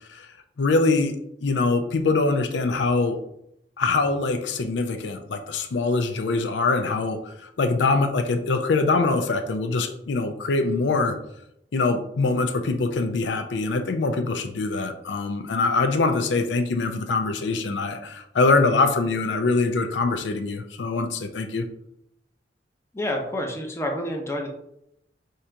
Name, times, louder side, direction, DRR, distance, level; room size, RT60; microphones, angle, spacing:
voice 1, 0.6-3.2 3.8-11.2 11.7-21.6, left 3 dB, 80° left, 7 dB, 0.5 m, -23 dB
voice 2, 22.9-24.5, left 1 dB, 15° left, 1 dB, 0.6 m, -28 dB
3.7 x 2.8 x 4.4 m, 0.78 s
head